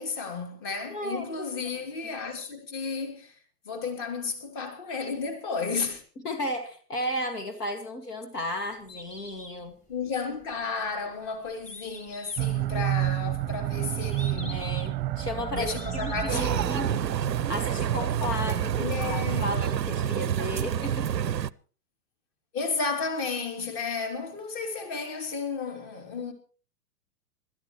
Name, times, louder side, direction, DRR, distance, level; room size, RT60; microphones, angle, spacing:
voice 1, 0.0-3.4 3.6-6.0 9.9-14.7 15.5-17.1 18.8-19.5 22.5-26.3, left 4 dB, 35° left, 2.9 m, -33 dB
voice 2, 0.9-1.5 6.2-9.7 14.5-16.9 17.5-21.1, left 1 dB, 70° left, 2.1 m, -34 dB
Bird, 8.7-16.7, left 1 dB, 15° left, 1.8 m, -48 dB
sound 1, 12.4-19.6, right 14 dB, 20° right, 0.8 m, -31 dB
sound 2, 16.3-21.5, right 9 dB, 85° right, 0.6 m, -28 dB
25.5 x 13.0 x 3.1 m
figure-of-eight pair, 110°, 49 cm